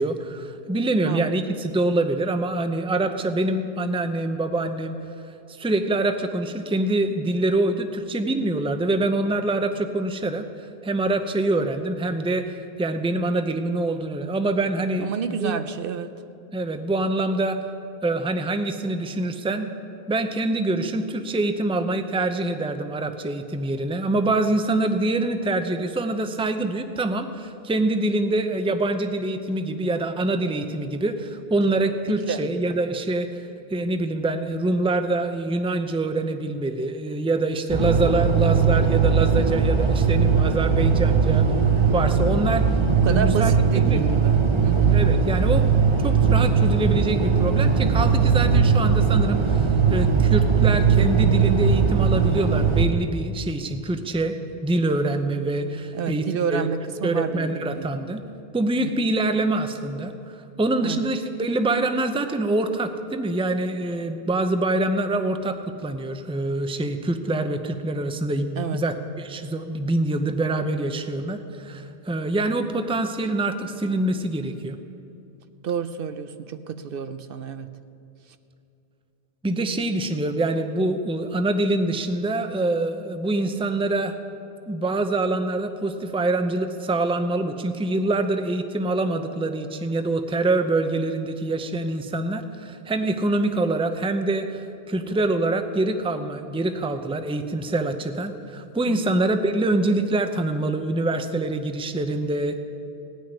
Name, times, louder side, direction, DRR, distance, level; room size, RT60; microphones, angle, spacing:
voice 1, 0.0-5.0 5.6-10.4 10.8-15.6 16.5-17.6 18.0-19.7 20.1-33.3 33.7-41.5 41.9-42.8 43.1-44.1 44.9-45.7 46.0-54.3 54.6-56.7 57.0-58.2 58.5-60.1 60.6-65.6 65.8-74.8 79.4-84.2 84.7-102.6, right 2 dB, 5° right, 8 dB, 0.5 m, -25 dB
voice 2, 15.0-16.1 32.3-32.4 43.0-45.0 55.9-57.9 58.8-59.1 60.8-61.0 68.6-68.8 75.6-77.7 98.9-99.1, right 7 dB, 65° right, 11 dB, 0.8 m, -30 dB
sound 1, 37.7-52.9, right 5 dB, 30° right, 0.9 m, -19 dB
17.5 x 6.3 x 9.8 m, 2.8 s
omnidirectional pair, 1.0 m